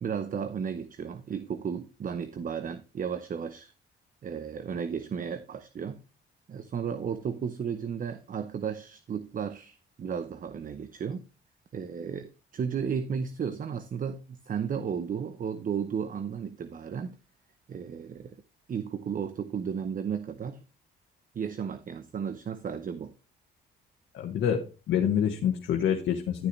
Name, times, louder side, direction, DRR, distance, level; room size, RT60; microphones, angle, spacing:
voice 1, 0.0-3.7 4.2-6.0 6.5-11.2 11.7-17.2 17.7-18.4 18.7-20.6 21.3-23.1, right 7 dB, 45° right, 0.7 m, -34 dB
voice 2, 24.1-24.6 24.9-26.5, left 9 dB, 75° left, 1.3 m, -26 dB
12.0 x 6.6 x 3.2 m
cardioid pair, 90°, 20 cm